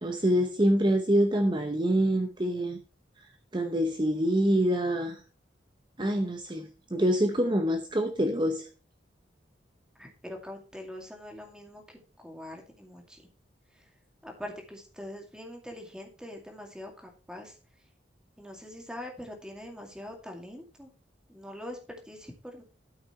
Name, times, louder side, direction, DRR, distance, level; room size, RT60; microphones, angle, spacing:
voice 1, 0.0-2.8 3.5-5.2 6.0-8.7, equal, 25° right, 0.8 m, -26 dB
voice 2, 10.0-13.2 13.7-13.9 14.2-17.5 18.4-20.9 21.3-22.6, left 1 dB, 5° right, 2.2 m, -43 dB
12.5 x 5.9 x 4.3 m
head